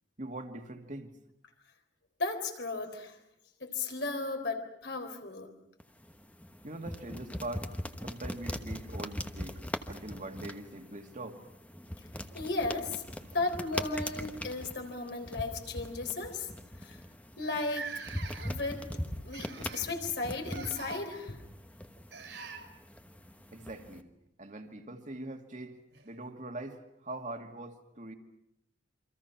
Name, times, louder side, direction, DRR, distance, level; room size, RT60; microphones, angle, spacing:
voice 1, 0.2-1.1 6.6-7.7 8.0-9.6 9.9-11.4 13.2-13.4 23.5-24.1 24.4-28.1, right 2 dB, 45° right, 5 dB, 2.3 m, -42 dB
voice 2, 2.2-3.2 3.6-5.5 12.3-13.0 13.3-16.5 16.8-17.0 17.4-17.9 18.4-18.9 19.2-21.4, left 3 dB, 70° left, 4 dB, 4.0 m, -35 dB
sound 1, 5.8-24.0, left 1 dB, 10° left, 1.2 m, -41 dB
sound 2, 13.4-13.9 15.0-15.1 15.5-15.7 16.4-16.5 16.7-16.8 17.4-18.8 19.3-19.9 20.4-21.0 22.1-22.6 24.8-24.9 25.9-26.0, right 5 dB, 75° right, 4.7 m, -44 dB
29.0 x 25.5 x 5.9 m, 0.81 s
head